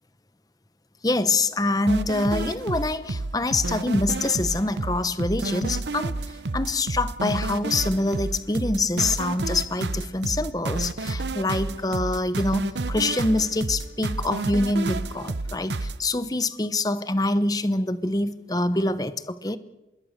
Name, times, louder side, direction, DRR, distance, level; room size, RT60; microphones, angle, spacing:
voice 1, 1.0-19.6, left 2 dB, 20° left, 12 dB, 1.0 m, -25 dB
sound 1, 1.9-16.0, right 2 dB, 80° right, 0.9 m, -30 dB
25.0 x 21.5 x 6.7 m, 1.0 s
head